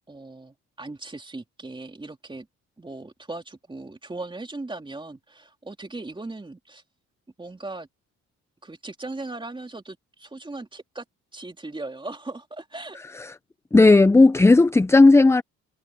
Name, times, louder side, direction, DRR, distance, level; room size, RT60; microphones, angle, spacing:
voice 1, 0.1-2.5 2.8-6.8 7.4-7.9 8.6-11.0 11.3-13.0, right 2 dB, 15° right, 2.8 m, -38 dB
voice 2, 13.7-15.4, left 3 dB, 10° left, 0.4 m, -14 dB
cardioid pair, 90°, 30 cm